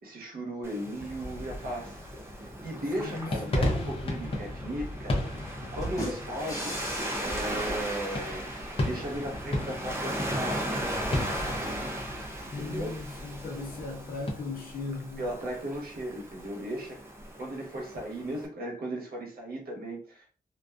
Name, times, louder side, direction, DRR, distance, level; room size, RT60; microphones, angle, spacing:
voice 1, 0.0-1.9 2.6-6.7 7.2-10.7 12.4-12.9 15.2-17.0 17.4-20.3, right 1 dB, 80° right, 1.0 m, -36 dB
Waves surf, 0.6-18.5, right 1 dB, 15° right, 0.5 m, -38 dB
sound 1, 1.0-14.3, left 1 dB, 40° left, 0.6 m, -35 dB
voice 2, 3.0-3.6 6.0-6.2 12.5-15.2, left 3 dB, 75° left, 0.8 m, -37 dB
sound 2, 5.8-8.6, equal, 20° left, 1.0 m, -40 dB
2.5 x 2.3 x 2.3 m
wide cardioid pair, 165°, 15 cm